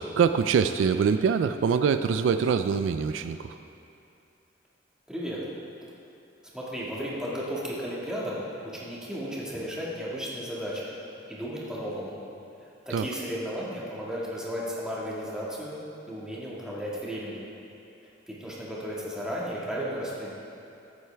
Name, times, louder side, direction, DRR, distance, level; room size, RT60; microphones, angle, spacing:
voice 1, 0.0-3.6 12.9-13.1, right 6 dB, 75° right, 10 dB, 0.3 m, -24 dB
voice 2, 5.1-5.4 6.5-8.4 8.7-10.9 11.3-12.2 12.6-15.8 16.1-17.4 18.3-20.3, equal, 5° right, -7 dB, 1.8 m, -34 dB
13.5 x 7.9 x 3.4 m, 2.8 s
head